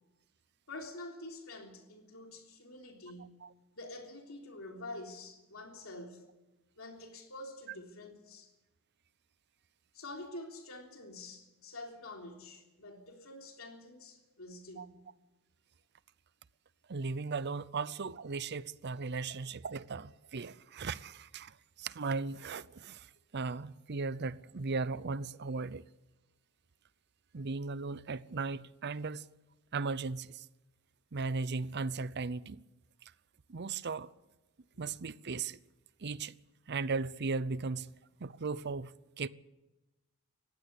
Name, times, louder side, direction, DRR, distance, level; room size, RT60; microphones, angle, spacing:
voice 1, 0.7-3.4 3.8-6.2 6.8-8.5 9.9-15.0 34.7-34.8, left 2 dB, 75° left, 3.5 m, -47 dB
voice 2, 16.9-25.8 27.3-29.2 29.7-30.5 31.1-32.6 33.5-34.1 34.8-35.6 36.0-36.3 36.7-37.9 38.2-39.3, right 4 dB, 50° right, 0.7 m, -37 dB
20.0 x 16.0 x 8.3 m
head